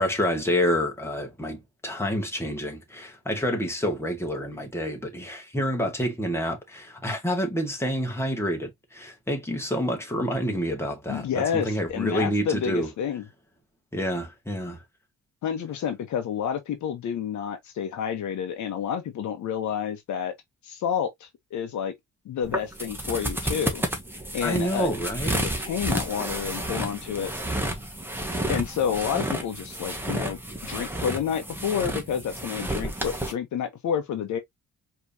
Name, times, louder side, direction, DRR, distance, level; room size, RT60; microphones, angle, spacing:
voice 1, 0.0-12.9 13.9-14.8 24.4-25.4, equal, 10° left, 2.1 m, -28 dB
voice 2, 11.1-13.3 15.4-20.3 20.6-21.9 22.2-23.8 24.3-24.9 25.3-27.3 28.5-34.4, left 8 dB, 70° left, 1.3 m, -29 dB
sound 1, 22.4-33.3, right 1 dB, 5° right, 1.7 m, -31 dB
4.9 x 3.5 x 2.9 m
cardioid pair, 90°, 30 cm